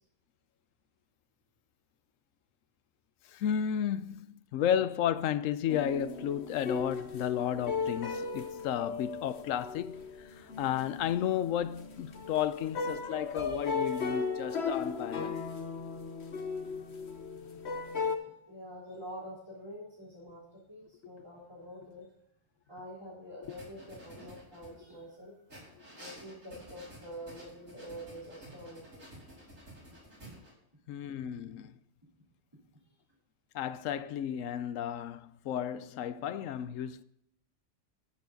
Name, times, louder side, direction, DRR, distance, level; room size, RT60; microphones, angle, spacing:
voice 1, 3.3-15.4 25.8-25.9 30.9-31.8 33.5-37.0, left 9 dB, 85° left, 1.0 m, -33 dB
sound 1, 5.7-18.2, left 5 dB, 60° left, 1.3 m, -36 dB
voice 2, 13.4-14.2 17.5-17.6 18.2-22.1 22.7-25.4 26.0-29.0, equal, 20° right, 3.9 m, -47 dB
sound 2, 23.4-25.0 25.5-30.5, right 1 dB, 85° right, 5.2 m, -51 dB
14.0 x 7.1 x 3.9 m
omnidirectional pair, 1.3 m